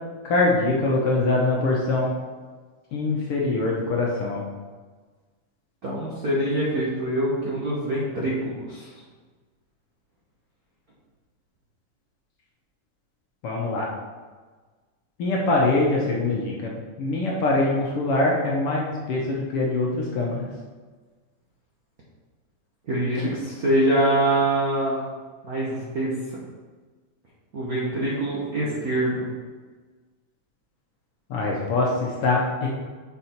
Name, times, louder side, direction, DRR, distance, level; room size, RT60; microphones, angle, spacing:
voice 1, 0.2-2.1 2.9-4.4 13.4-13.9 15.2-20.4 31.3-32.7, left 2 dB, 65° left, -3 dB, 1.6 m, -23 dB
voice 2, 5.8-8.9 22.9-25.1 25.4-26.4 27.5-29.3, right 1 dB, 70° right, -6 dB, 0.8 m, -24 dB
6.7 x 4.8 x 4.3 m, 1.4 s
omnidirectional pair, 3.3 m